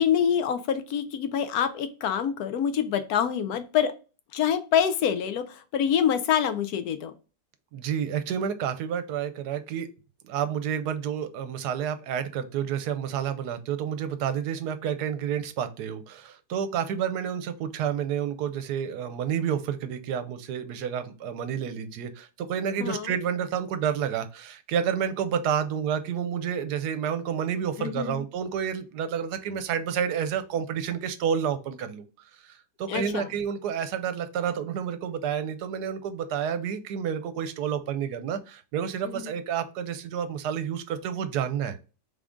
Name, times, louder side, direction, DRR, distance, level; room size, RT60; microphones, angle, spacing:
voice 1, 0.0-3.9 4.3-7.1 22.8-23.1 27.8-28.2 32.9-33.3 39.1-39.3, left 8 dB, 75° left, 10 dB, 1.0 m, -26 dB
voice 2, 7.7-9.9 10.2-32.1 32.4-41.8, right 8 dB, 75° right, 11 dB, 1.1 m, -30 dB
3.6 x 3.6 x 3.7 m, 0.33 s
omnidirectional pair, 1.8 m